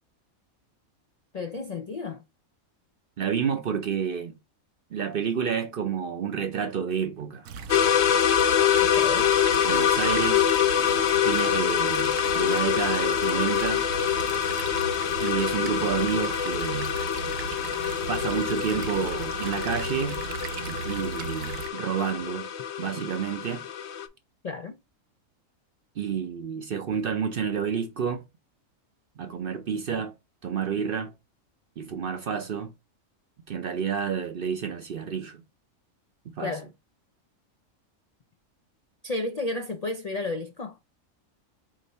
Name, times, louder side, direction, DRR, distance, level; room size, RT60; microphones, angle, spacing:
voice 1, 1.3-2.2 8.8-9.3 24.4-24.8 36.4-36.7 39.0-40.8, left 2 dB, 90° left, 0.3 m, -32 dB
voice 2, 3.2-4.3 4.9-7.5 9.6-10.5 11.2-13.8 15.2-16.9 18.1-20.2 20.7-22.5 22.8-23.7 26.0-28.2 29.2-30.1 30.4-31.1 31.8-32.7 33.5-35.4 36.4-36.6, right 7 dB, 55° right, 0.6 m, -29 dB
sound 1, 7.4-21.7, right 6 dB, 80° right, 1.0 m, -37 dB
sound 2, 7.7-24.1, left 9 dB, 65° left, 0.8 m, -25 dB
4.9 x 2.6 x 4.0 m
omnidirectional pair, 1.5 m